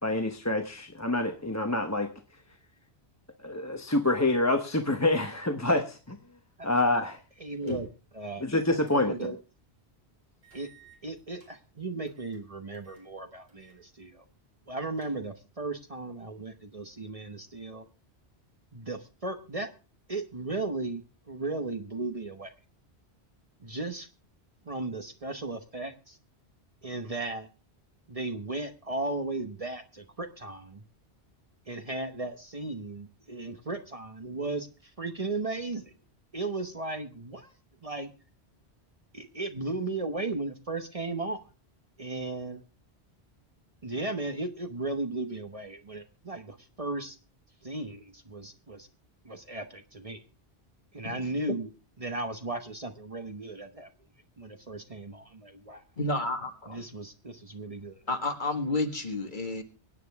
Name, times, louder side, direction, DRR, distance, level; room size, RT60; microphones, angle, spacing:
voice 1, 0.0-2.1 3.4-6.2 6.6-7.2 7.6-7.8 8.4-9.3, left 2 dB, 15° left, 5 dB, 0.9 m, -27 dB
voice 2, 7.4-7.9 8.1-8.4 8.9-9.4 10.5-10.7 11.0-14.2 14.7-17.8 18.7-19.7 20.1-22.5 23.6-24.1 24.7-26.2 26.8-27.5 28.1-30.8 31.7-35.9 36.3-37.5 37.8-38.1 39.1-41.4 42.0-42.6 43.8-47.2 47.6-48.9 49.2-50.2 50.9-51.7 52.0-53.9 54.4-55.8 56.7-58.0, right 2 dB, 35° right, 7 dB, 1.1 m, -36 dB
sound 1, 7.5-8.1 8.8-9.1 9.5-9.6 10.4-11.5 12.1-12.4 12.7-13.1 13.5-13.8 14.1-14.2 14.7-15.5, right 1 dB, 65° right, 4.0 m, -51 dB
voice 3, 56.0-56.8 58.1-59.6, left 2 dB, 50° left, 5 dB, 1.9 m, -30 dB
24.0 x 9.2 x 3.5 m, 0.35 s
omnidirectional pair, 1.1 m